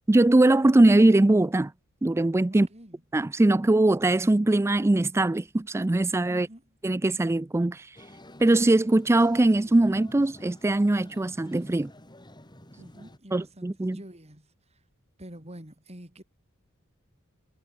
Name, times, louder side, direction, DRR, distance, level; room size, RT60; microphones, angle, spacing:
voice 1, 0.1-1.7 2.0-2.7 3.1-6.5 6.8-7.9 8.4-11.9 13.3-14.0, right 2 dB, 10° right, 0.4 m, -21 dB
voice 2, 2.5-3.0 6.3-6.8 12.8-14.8 15.2-16.2, right 1 dB, 30° right, 6.7 m, -47 dB
sound 1, 7.9-13.2, left 1 dB, 20° left, 7.6 m, -50 dB
head